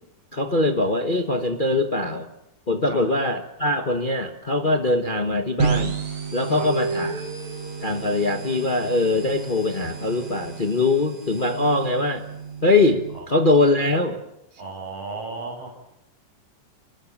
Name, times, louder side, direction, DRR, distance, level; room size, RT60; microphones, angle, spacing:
voice 1, 0.3-2.3 2.7-6.0 6.3-7.2 7.8-12.2 12.6-14.2, left 2 dB, 85° left, 5 dB, 0.4 m, -22 dB
sound 1, 5.6-13.2, right 5 dB, 65° right, 7.1 m, -32 dB
sound 2, 6.0-9.1, right 2 dB, 70° left, 6.8 m, -35 dB
voice 2, 14.6-15.8, right 3 dB, 50° right, 2 dB, 7.9 m, -35 dB
29.5 x 20.0 x 7.4 m, 0.87 s
omnidirectional pair, 3.6 m